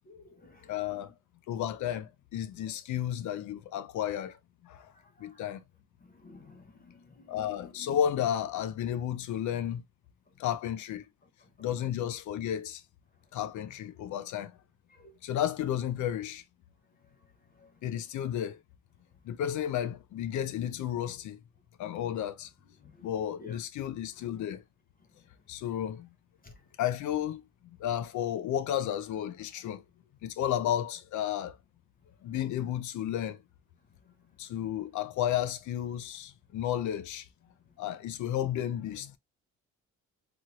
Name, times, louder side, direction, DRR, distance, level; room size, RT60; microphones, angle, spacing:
voice 1, 0.1-1.0 2.6-2.7 4.7-4.8 5.2-5.5 6.0-8.2 11.6-11.7 14.9-15.1 17.6-17.7 22.8-23.1 23.4-23.6 26.4-26.5, left 4 dB, 30° left, 0.7 m, -52 dB
voice 2, 0.7-1.1 1.5-4.4 4.6-4.9 5.2-5.6 7.3-9.8 10.4-11.0 11.6-12.8 13.3-14.5 15.2-16.4 17.8-18.6 19.3-21.4 21.8-22.5 23.0-24.6 25.5-26.1 26.8-27.4 27.8-29.8 30.2-31.6 32.2-33.4 34.4-37.3 37.8-39.2, left 10 dB, 75° left, 0.5 m, -32 dB
3.0 x 2.5 x 2.9 m
cardioid pair, 90°, 30 cm